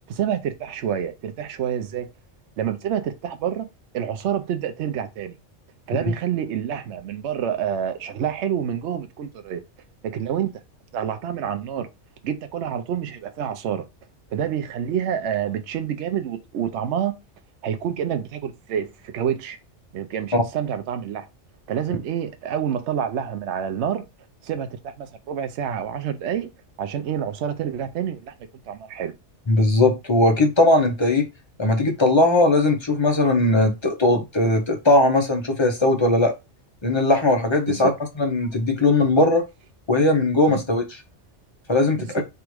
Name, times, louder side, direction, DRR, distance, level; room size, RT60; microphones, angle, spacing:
voice 1, 0.1-2.1 2.6-3.7 3.9-5.4 5.9-9.6 10.0-10.5 10.9-11.9 12.2-13.8 14.3-17.1 17.6-19.6 19.9-21.3 21.7-24.0 24.4-26.5 26.8-28.3 28.7-29.1 37.7-37.9 40.5-40.6 42.0-42.2, right 9 dB, 70° right, 0.9 m, -27 dB
voice 2, 29.5-31.3 31.6-36.3 36.8-39.4 39.9-41.0 41.7-42.1, left 2 dB, 25° left, 0.7 m, -19 dB
3.5 x 2.6 x 4.5 m
omnidirectional pair, 1.2 m